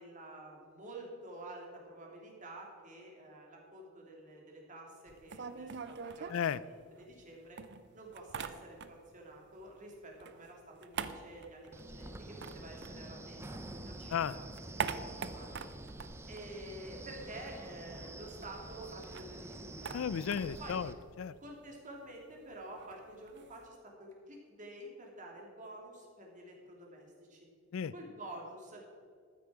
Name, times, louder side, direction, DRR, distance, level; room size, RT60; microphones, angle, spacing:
voice 1, 0.0-7.6 7.9-14.5 14.7-15.6 16.3-20.0 20.6-20.7 21.4-27.5 27.9-28.9, right 1 dB, 40° right, -1 dB, 2.7 m, -49 dB
sound 1, 5.1-7.3 7.6-9.2 9.5-13.6 14.0-17.3 17.5-17.6 17.9-23.7, right 6 dB, 60° right, 0.6 m, -44 dB
voice 2, 6.3-6.6 14.1-14.3 19.9-21.4 27.7-27.9, left 7 dB, 75° left, 18 dB, 0.4 m, -34 dB
Wind, 11.7-20.9, right 1 dB, 15° right, 0.7 m, -47 dB
13.5 x 9.6 x 4.8 m, 2.2 s
head